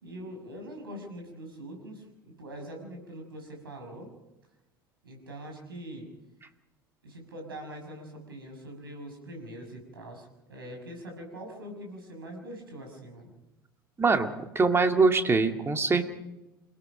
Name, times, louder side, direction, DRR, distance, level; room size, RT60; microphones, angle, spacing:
voice 1, 0.0-4.1 5.0-6.1 7.0-13.3, right 1 dB, 80° right, 3 dB, 6.5 m, -43 dB
voice 2, 14.0-16.0, right 4 dB, 20° right, 6 dB, 2.1 m, -23 dB
29.0 x 18.0 x 5.2 m, 0.98 s
figure-of-eight pair, 70°, 12 cm